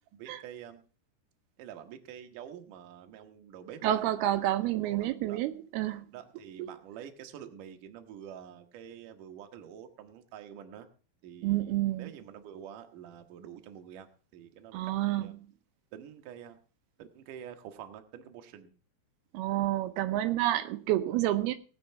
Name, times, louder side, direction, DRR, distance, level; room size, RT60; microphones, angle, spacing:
voice 1, 0.1-0.8 1.6-4.5 4.8-5.4 6.1-10.9 11.2-15.4 15.9-16.6 17.0-18.7, right 9 dB, 65° right, 6 dB, 2.5 m, -47 dB
voice 2, 3.8-6.1 11.4-12.1 14.7-15.3 19.3-21.5, right 14 dB, 85° right, 9 dB, 2.7 m, -29 dB
18.5 x 6.5 x 5.7 m, 0.39 s
omnidirectional pair, 4.4 m